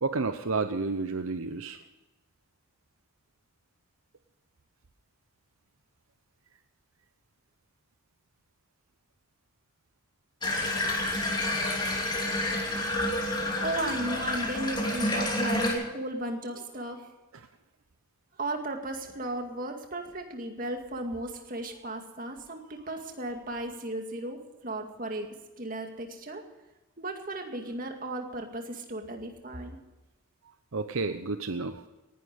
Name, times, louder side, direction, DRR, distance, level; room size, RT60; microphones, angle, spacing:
voice 1, 0.0-1.8 12.7-12.9 30.7-31.8, right 3 dB, 75° right, 9 dB, 0.8 m, -31 dB
Water tap faucet / Bathtub (filling or washing), 10.4-15.7, left 1 dB, 20° left, 3.0 m, -29 dB
voice 2, 13.6-17.1 18.4-25.3 25.6-26.4 27.0-29.8, right 1 dB, 40° right, 4 dB, 2.2 m, -35 dB
19.0 x 11.5 x 5.3 m, 1.1 s
head